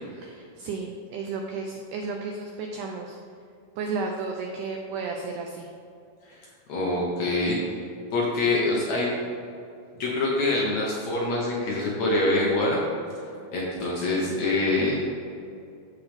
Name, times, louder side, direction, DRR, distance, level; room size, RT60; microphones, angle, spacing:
voice 1, 0.2-3.2 3.8-5.7, right 4 dB, 85° right, 2 dB, 1.8 m, -33 dB
voice 2, 6.7-7.8 8.1-9.1 9.9-12.8 13.5-15.0, left 2 dB, 65° left, -4 dB, 1.8 m, -25 dB
13.5 x 4.6 x 3.5 m, 2.6 s
omnidirectional pair, 4.3 m